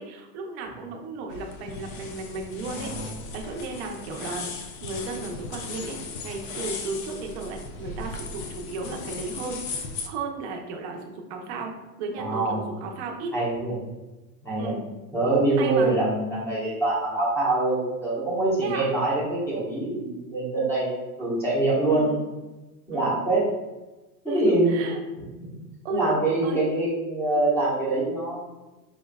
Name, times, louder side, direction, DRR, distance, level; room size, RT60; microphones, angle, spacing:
voice 1, 0.0-6.0 6.2-11.7 12.0-13.4 14.6-14.8 15.5-15.9 18.6-18.9 21.9-22.2 22.9-23.2 24.3-25.0 25.8-26.1 26.4-26.6, right 3 dB, 40° right, 2 dB, 0.7 m, -34 dB
sound 1, 1.3-10.1, left 4 dB, 45° left, 0.5 m, -37 dB
voice 2, 2.7-3.1 12.2-12.7 13.3-13.7 14.4-14.7 15.1-22.1 22.9-23.5 24.2-24.9 25.4-25.5 25.9-28.4, right 2 dB, 5° left, -7 dB, 1.1 m, -24 dB
4.9 x 3.4 x 2.2 m, 1.1 s
supercardioid pair, 155°, 49 cm